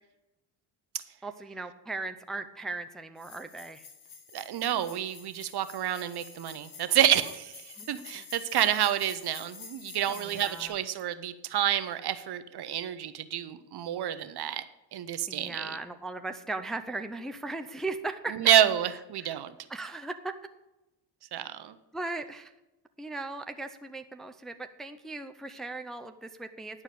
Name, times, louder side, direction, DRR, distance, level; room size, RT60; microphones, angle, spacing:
voice 1, 1.2-3.9 7.8-7.9 10.1-10.8 15.3-18.4 19.2-19.4 19.7-20.3 21.9-22.5 23.0-26.8, right 3 dB, ahead, 7 dB, 0.5 m, -38 dB
sound 1, 3.2-10.7, left 6 dB, 85° left, 2.3 m, -48 dB
voice 2, 4.3-14.7 14.9-15.8 18.3-19.5 21.3-21.8, right 11 dB, 55° right, 12 dB, 0.9 m, -28 dB
11.0 x 4.8 x 8.3 m, 0.99 s
cardioid pair, 110°, 46 cm